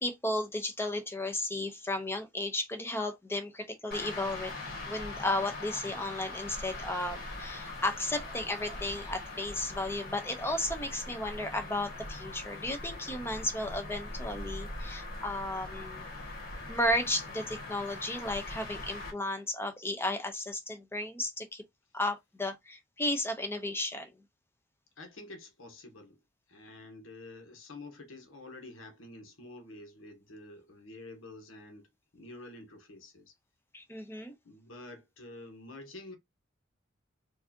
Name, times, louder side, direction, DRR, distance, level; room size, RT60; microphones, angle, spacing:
voice 1, 0.0-4.5 4.9-16.0 16.7-21.6 21.9-24.1 33.7-34.3, left 1 dB, 10° left, 0.7 m, -34 dB
sound 1, 3.9-19.1, left 2 dB, 50° left, 1.9 m, -41 dB
voice 2, 25.0-26.2 26.5-33.3 34.4-36.1, left 2 dB, 80° left, 1.2 m, -48 dB
4.6 x 2.7 x 2.8 m
head